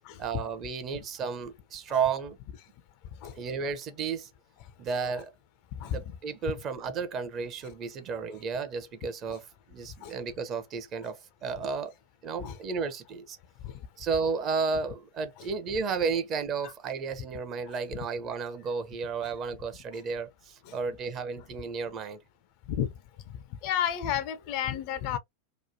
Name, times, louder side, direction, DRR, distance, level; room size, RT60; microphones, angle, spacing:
voice 1, 0.2-2.4 3.3-4.3 4.8-5.3 5.9-11.9 12.2-13.4 14.0-22.2, right 5 dB, 30° right, 0.7 m, -33 dB
voice 2, 23.6-25.2, left 10 dB, 45° left, 0.5 m, -31 dB
3.0 x 2.2 x 2.6 m
figure-of-eight pair, 90°, 0 cm